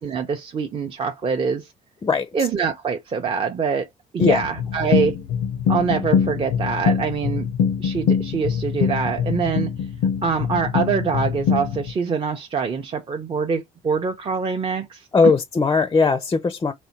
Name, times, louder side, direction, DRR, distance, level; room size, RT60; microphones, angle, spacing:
voice 1, 0.0-1.7 2.3-3.9 4.1-5.2 5.7-7.5 7.8-9.7 10.2-15.3, right 6 dB, 30° right, 0.5 m, -24 dB
sound 1, 4.2-11.9, left 7 dB, 80° left, 0.5 m, -23 dB
voice 2, 15.1-16.7, left 4 dB, 20° left, 0.4 m, -18 dB
4.1 x 2.1 x 2.8 m
cardioid pair, 110°, 17 cm